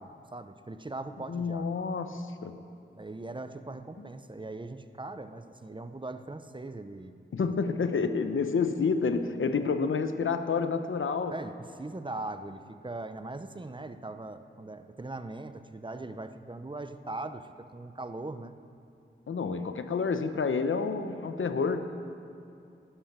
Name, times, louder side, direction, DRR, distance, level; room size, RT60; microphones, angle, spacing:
voice 1, 0.0-1.7 2.9-7.5 9.6-9.7 11.3-18.5, right 2 dB, 25° right, 9 dB, 0.8 m, -40 dB
voice 2, 1.3-2.6 7.3-11.3 19.3-21.9, left 5 dB, 80° left, 8 dB, 0.9 m, -29 dB
12.0 x 11.5 x 9.0 m, 2.5 s
cardioid pair, 60°, 20 cm